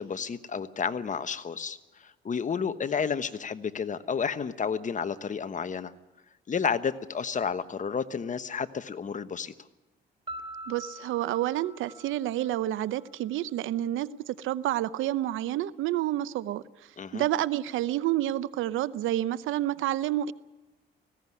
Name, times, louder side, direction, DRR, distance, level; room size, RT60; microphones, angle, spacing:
voice 1, 0.0-5.9 6.5-9.5 17.0-17.2, left 6 dB, 40° left, 12 dB, 1.2 m, -31 dB
Piano, 10.3-13.1, right 1 dB, 25° right, 4.0 m, -43 dB
voice 2, 10.7-16.6 17.1-20.3, right 13 dB, 85° right, 17 dB, 0.8 m, -29 dB
19.5 x 16.5 x 9.8 m, 1.1 s
cardioid pair, 90°, 20 cm